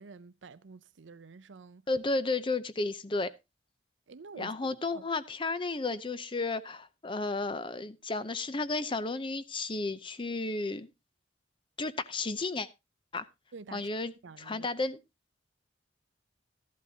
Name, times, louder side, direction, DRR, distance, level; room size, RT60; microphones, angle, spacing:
voice 1, 0.0-1.8 4.1-5.0 13.5-13.9 14.2-14.7, right 4 dB, 80° right, 0.6 m, -49 dB
voice 2, 1.9-3.3 4.4-10.9 11.8-12.7 13.1-13.3 13.7-14.1 14.4-15.0, left 3 dB, 25° left, 0.6 m, -33 dB
13.5 x 11.0 x 2.8 m
head